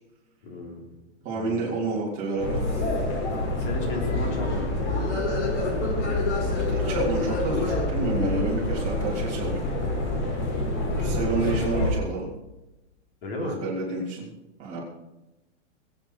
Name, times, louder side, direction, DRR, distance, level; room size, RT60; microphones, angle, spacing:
voice 1, 0.4-0.8 1.3-1.6 3.5-4.9 10.8-11.5 13.2-13.6, left 3 dB, 50° left, 1 dB, 4.0 m, -34 dB
voice 2, 1.2-2.6 6.7-9.6 11.0-12.3 13.4-14.3 14.6-14.8, right 3 dB, 20° right, -5 dB, 3.5 m, -29 dB
sound 1, 2.4-11.9, left 2 dB, 75° left, 6.0 m, -26 dB
21.5 x 8.9 x 4.9 m, 0.99 s
hypercardioid pair, 175°, 36 cm